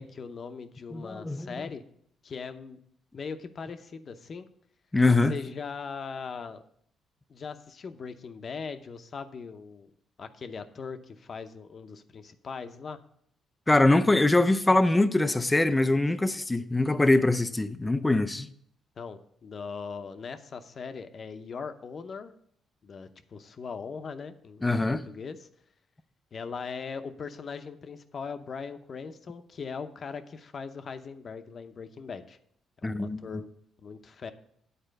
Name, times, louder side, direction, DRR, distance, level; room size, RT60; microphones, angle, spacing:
voice 1, 0.0-1.8 2.2-2.8 3.1-4.5 5.3-6.6 7.3-9.9 10.2-13.0 19.0-22.3 22.8-25.5 26.3-32.4 33.0-33.5 33.8-34.3, left 5 dB, 45° left, 0.7 m, -40 dB
voice 2, 0.9-1.5 4.9-5.4 13.7-18.5 24.6-25.0 32.8-33.4, left 2 dB, 15° left, 0.5 m, -23 dB
9.0 x 4.3 x 6.4 m
cardioid pair, 90°, 0 cm